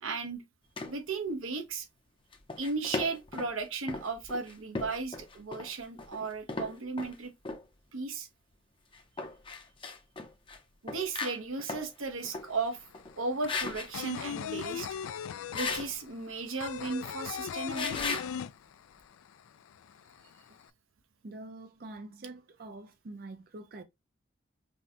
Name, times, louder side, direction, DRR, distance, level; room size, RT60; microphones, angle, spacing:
voice 1, 0.0-0.4 0.9-1.9 2.6-7.3 7.9-8.3 10.8-12.8 13.2-14.9 15.5-18.2, right 4 dB, 85° right, 0.9 m, -35 dB
sound 1, 0.8-0.9 2.3-3.5 3.9-7.2 7.5-7.6 8.9-10.6 10.9-11.9 12.2-12.5 12.9-13.1 13.5-13.9 15.5-15.9 17.7-18.3, left 3 dB, 25° left, 0.7 m, -37 dB
sound 2, 12.2-12.3 12.5-19.1 19.4-19.5 19.8-20.6, left 8 dB, 90° left, 0.3 m, -37 dB
voice 2, 21.2-23.8, right 2 dB, 50° right, 0.5 m, -45 dB
5.3 x 2.2 x 2.8 m
head